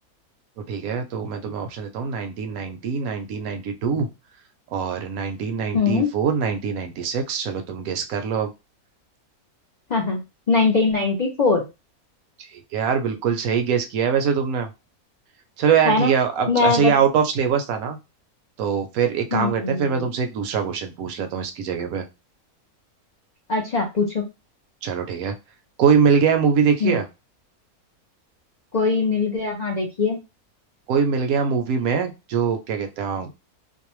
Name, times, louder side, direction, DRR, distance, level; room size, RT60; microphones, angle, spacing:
voice 1, 0.7-4.1 4.7-8.5 12.7-14.7 15.6-18.0 18.6-22.0 24.8-25.3 25.8-27.0 30.9-33.3, right 6 dB, 75° right, 6 dB, 1.0 m, -23 dB
voice 2, 5.7-6.1 9.9-10.2 10.5-11.6 15.9-16.1 16.5-16.9 19.3-20.1 23.5-24.2 26.8-27.0 28.7-30.2, left 4 dB, 80° left, 0 dB, 0.3 m, -21 dB
2.6 x 2.1 x 2.9 m, 0.25 s
omnidirectional pair, 1.6 m